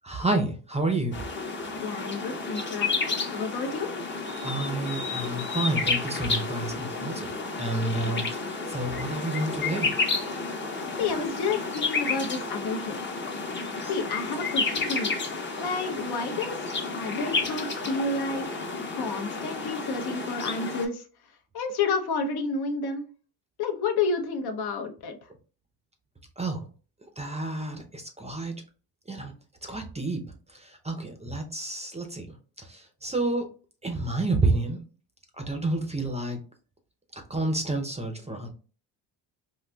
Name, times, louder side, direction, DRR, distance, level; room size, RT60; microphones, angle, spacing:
voice 1, 0.1-1.2 4.4-9.9 18.3-18.4 26.4-26.7 27.2-28.5 29.1-29.3 29.6-30.2 30.5-32.3 32.6-33.5 33.8-34.8 35.4-36.4 37.3-38.5, right 2 dB, 15° right, 0.6 m, -29 dB
sound 1, 1.1-20.9, left 4 dB, 25° left, 0.7 m, -31 dB
voice 2, 1.8-3.9 8.0-8.2 11.0-13.0 13.9-15.2 15.6-18.5 18.9-21.0 21.5-23.1 23.6-25.2, left 4 dB, 55° left, 0.7 m, -30 dB
4.0 x 2.5 x 2.2 m
cardioid pair, 110°, 45 cm